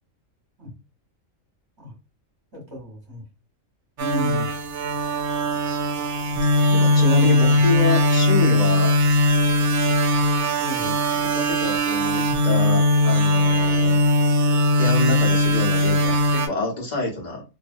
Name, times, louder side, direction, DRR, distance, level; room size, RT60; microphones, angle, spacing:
voice 1, 2.5-3.2 4.0-4.5 6.9-7.6 10.6-10.9, equal, 15° right, -1 dB, 1.2 m, -33 dB
sound 1, 4.0-16.5, left 1 dB, 65° right, 0.8 m, -20 dB
voice 2, 6.7-9.0 10.3-10.4 10.8-14.0 14.7-17.4, left 3 dB, 40° left, -1 dB, 0.9 m, -27 dB
2.7 x 2.5 x 2.5 m, 0.28 s
omnidirectional pair, 1.4 m